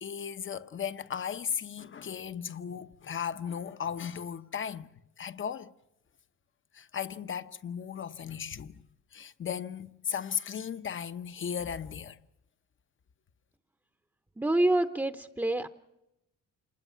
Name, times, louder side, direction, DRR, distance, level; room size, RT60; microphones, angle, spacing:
voice 1, 0.0-4.9 5.2-5.7 6.7-8.8 9.1-12.2, left 7 dB, 40° left, 0.9 m, -36 dB
voice 2, 14.4-15.7, right 1 dB, 5° right, 0.9 m, -27 dB
27.0 x 20.5 x 5.7 m
cardioid pair, 90°, 30 cm